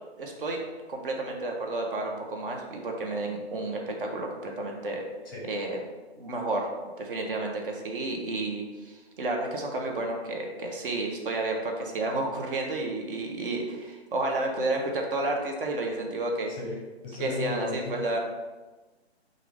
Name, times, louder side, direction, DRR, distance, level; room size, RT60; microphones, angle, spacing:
voice 1, 0.2-0.6 0.9-5.0 5.5-5.8 6.2-6.7 7.0-16.5 17.2-18.2, right 2 dB, 55° right, 1 dB, 0.9 m, -31 dB
voice 2, 16.5-18.0, left 3 dB, 20° left, -2 dB, 0.6 m, -35 dB
5.6 x 2.5 x 3.3 m, 1.2 s
hypercardioid pair, 145°, 33 cm